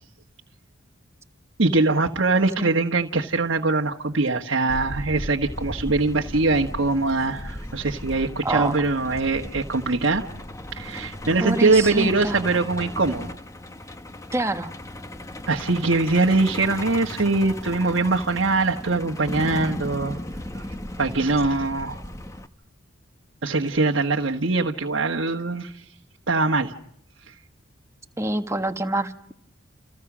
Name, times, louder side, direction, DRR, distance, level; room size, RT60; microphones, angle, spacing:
voice 1, 1.6-10.2 10.8-13.3 15.5-20.2 20.5-20.7 21.0-22.0 23.4-25.8 26.3-26.7, right 3 dB, 65° right, 1 dB, 1.5 m, -22 dB
Truck, 4.7-22.5, left 1 dB, 15° left, 1.3 m, -36 dB
voice 2, 8.4-8.7 11.4-12.4 14.3-14.7 28.2-29.3, right 2 dB, 15° right, 7 dB, 1.4 m, -26 dB
30.0 x 29.5 x 6.2 m, 0.68 s
head